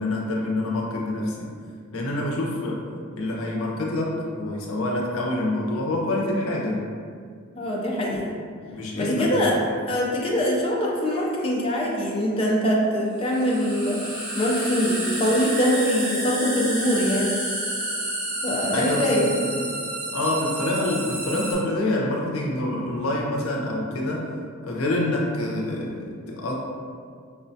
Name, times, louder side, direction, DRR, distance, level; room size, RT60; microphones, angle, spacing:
voice 1, 0.0-1.5 1.9-2.8 3.1-6.8 8.7-9.6 18.7-19.3 19.5-19.6 20.1-24.3 24.6-26.5, left 1 dB, 85° left, -1 dB, 0.6 m, -26 dB
voice 2, 7.6-8.3 9.0-9.6 9.9-14.0 14.3-17.4 18.4-19.3, equal, 25° left, -4 dB, 0.4 m, -23 dB
sound 1, 11.0-11.1 13.2-21.5, right 1 dB, 45° right, 0.9 m, -30 dB
4.7 x 2.2 x 2.6 m, 2.1 s
head